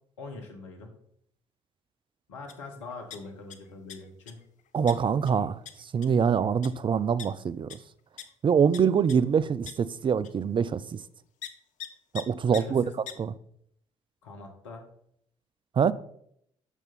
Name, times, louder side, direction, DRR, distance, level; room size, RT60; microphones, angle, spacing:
voice 1, 0.2-0.9 2.3-4.4 12.5-12.9 14.2-14.8, left 3 dB, 80° left, 1.4 m, -43 dB
sound 1, 2.5-2.6 2.9-3.5 3.9-4.3 4.9-5.0 5.3-5.4 5.6-5.7 6.0-6.2 6.6-6.7 7.2-7.3 7.7-7.8 8.2-8.3 8.7-8.8 9.1-9.2 9.7-9.8 10.2-10.3 11.4-11.5 11.8-11.9 12.1-12.2 12.5-12.6 13.1-13.2, left 10 dB, 55° left, 0.8 m, -39 dB
voice 2, 4.7-5.6 5.9-7.7 8.4-10.8 12.1-12.8 13.2-13.3 15.8-15.9, right 7 dB, 35° right, 0.5 m, -24 dB
7.3 x 6.6 x 4.2 m
figure-of-eight pair, 45°, 15 cm